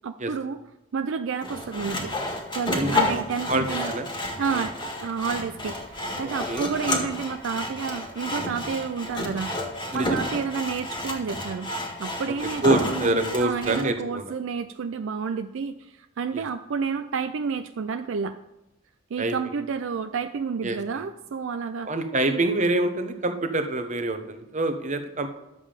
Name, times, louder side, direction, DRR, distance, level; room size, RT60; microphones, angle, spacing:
voice 1, 0.0-0.6 0.9-2.1 2.5-3.9 4.4-11.7 12.0-18.4 19.1-21.9 22.3-22.4, right 5 dB, 65° right, 9 dB, 0.4 m, -30 dB
Sawing, 1.4-13.9, left 1 dB, 20° left, 1.6 m, -30 dB
voice 2, 2.7-3.2 3.5-4.1 6.2-6.7 9.9-10.3 12.6-14.3 16.3-16.4 19.2-19.3 20.6-20.8 21.8-25.3, right 2 dB, 35° right, 7 dB, 0.9 m, -26 dB
10.5 x 7.4 x 5.0 m, 0.97 s
head